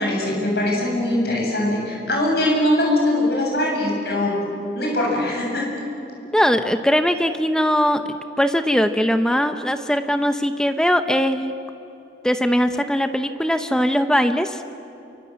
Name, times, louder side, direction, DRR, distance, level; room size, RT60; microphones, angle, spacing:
voice 1, 0.0-4.3 4.7-5.7, left 1 dB, 65° left, -2 dB, 8.0 m, -21 dB
voice 2, 6.3-8.0 8.4-11.5 12.2-14.6, equal, 5° left, 8 dB, 0.8 m, -20 dB
28.0 x 24.0 x 7.5 m, 2.9 s
head